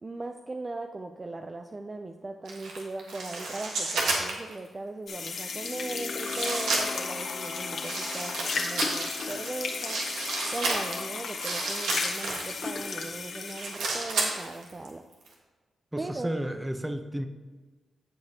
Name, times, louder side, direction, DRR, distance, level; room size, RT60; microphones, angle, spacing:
voice 1, 0.0-10.0 10.5-15.0 16.0-16.3, right 2 dB, 35° right, 5 dB, 0.4 m, -38 dB
sound 1, 2.4-4.6 5.3-5.4 6.2-7.1 7.8-12.6 13.1-14.9 15.1-15.3, right 3 dB, 85° right, 1.4 m, -31 dB
sound 2, 5.1-13.8, left 4 dB, 70° left, 1.0 m, -34 dB
sound 3, 5.5-11.2, left 4 dB, 45° left, 0.5 m, -43 dB
voice 2, 15.9-17.3, right 1 dB, 10° right, 7 dB, 0.8 m, -32 dB
14.5 x 5.0 x 2.9 m, 1.3 s
cardioid pair, 55°, 0 cm